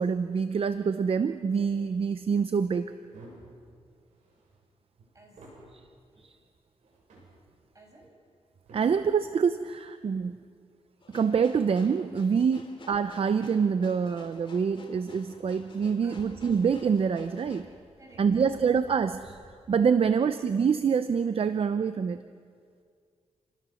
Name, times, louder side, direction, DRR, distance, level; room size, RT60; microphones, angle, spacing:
voice 1, 0.0-2.9 6.2-6.3 8.7-10.4 11.1-17.7 18.2-19.4 19.7-22.2, right 6 dB, 50° right, 11 dB, 0.7 m, -26 dB
sound 1, 1.7-2.0 2.8-3.6 3.9-5.7 6.1-6.3 6.7-7.4 8.3-9.2 11.6-12.5 14.3-14.5 15.0-19.7, right 2 dB, 75° right, 7.8 m, -54 dB
voice 2, 5.1-5.5 7.7-8.1 16.0-16.2 18.0-18.5 20.0-20.2, right 2 dB, 25° right, 0 dB, 6.4 m, -54 dB
sound 2, 11.0-17.6, left 3 dB, 40° left, 2.7 m, -52 dB
28.5 x 19.0 x 6.4 m, 2.1 s
cardioid pair, 95°, 12 cm